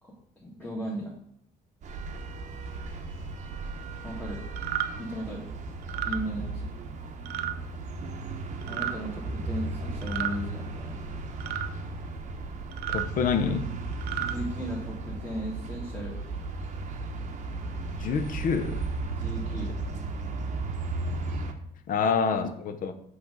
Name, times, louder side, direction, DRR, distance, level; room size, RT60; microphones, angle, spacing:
voice 1, 0.0-1.2 4.0-4.4 5.0-5.5 6.0-6.7 8.6-11.0 14.2-16.2 19.2-19.8, equal, 10° left, -6 dB, 1.4 m, -36 dB
sound 1, 1.8-21.5, right 3 dB, 45° right, 0.7 m, -35 dB
sound 2, 4.6-4.9 5.8-6.2 7.3-7.5 8.6-9.0 10.0-10.4 11.4-11.7 12.7-13.1 13.9-14.3, right 12 dB, 75° right, 0.5 m, -31 dB
voice 2, 12.9-13.7 17.9-18.9 21.9-22.9, left 6 dB, 55° left, 9 dB, 0.7 m, -27 dB
5.7 x 3.2 x 5.4 m, 0.71 s
cardioid pair, 110°, 17 cm